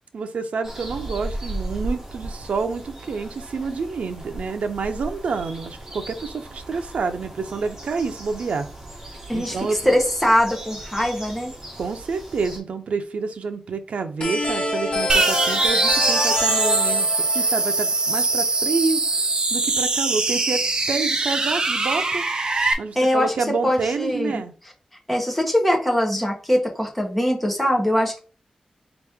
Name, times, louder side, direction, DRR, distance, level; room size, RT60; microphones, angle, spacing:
voice 1, 0.1-8.7 9.3-9.8 11.8-19.0 19.5-20.6 20.9-22.2 22.8-24.5, right 4 dB, 90° right, 7 dB, 0.5 m, -28 dB
sound 1, 0.6-12.6, right 1 dB, 25° right, 1.4 m, -36 dB
voice 2, 9.3-11.5 22.9-23.3 23.6-24.4 25.1-28.2, equal, 5° left, 0 dB, 1.1 m, -22 dB
sound 2, 14.2-18.8, left 2 dB, 45° left, 1.4 m, -27 dB
sound 3, 15.1-22.7, right 3 dB, 40° right, 0.6 m, -22 dB
4.2 x 3.0 x 3.5 m, 0.36 s
wide cardioid pair, 165°, 2 cm